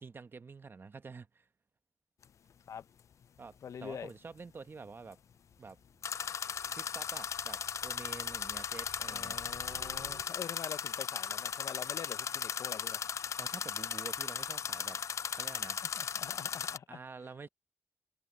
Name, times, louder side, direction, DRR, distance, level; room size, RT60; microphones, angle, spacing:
voice 1, 0.0-1.5 3.4-5.2 5.6-5.8 6.7-9.4 13.4-15.0 15.3-15.8 16.9-17.5, right 4 dB, 45° right, 1.1 m, -48 dB
sound 1, 2.2-2.3 6.0-16.8, left 7 dB, 70° left, 0.4 m, -37 dB
voice 2, 3.6-4.1 9.1-13.0 15.8-17.0, left 8 dB, 90° left, 0.9 m, -45 dB
sound 2, 5.6-10.8, right 6 dB, 80° right, 2.5 m, -56 dB
wide cardioid pair, 90°, 5 cm